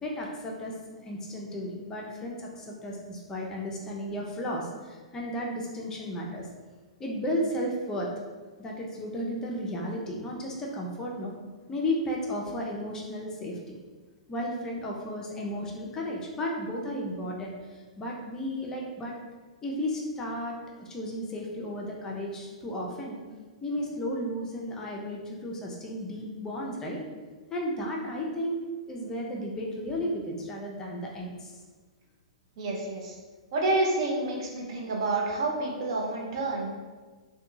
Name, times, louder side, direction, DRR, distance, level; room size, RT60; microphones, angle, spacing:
voice 1, 0.0-6.5 7.0-8.1 8.6-11.3 11.7-13.7 14.3-19.1 19.6-23.2 23.6-27.0 27.5-28.6 28.9-31.6, equal, 15° left, -2 dB, 0.4 m, -34 dB
voice 2, 32.6-33.1 33.5-36.7, right 2 dB, 50° right, -1 dB, 0.5 m, -29 dB
2.6 x 2.2 x 2.6 m, 1.4 s
figure-of-eight pair, 110°, 3 cm